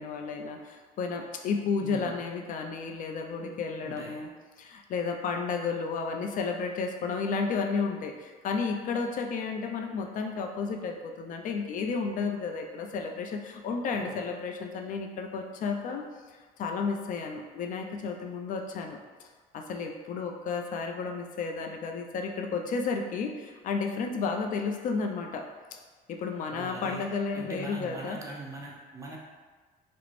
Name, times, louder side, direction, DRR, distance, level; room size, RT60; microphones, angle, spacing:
voice 1, 0.0-4.3 4.6-16.1 16.6-19.0 19.5-25.4 25.7-25.8 26.1-28.2, left 4 dB, 50° left, 3 dB, 0.4 m, -32 dB
voice 2, 1.8-2.1 3.8-4.2 13.9-14.2 26.5-27.1 27.3-29.2, right 2 dB, 20° right, -2 dB, 0.5 m, -42 dB
2.5 x 2.0 x 3.1 m, 1.4 s
cardioid pair, 110°, 17 cm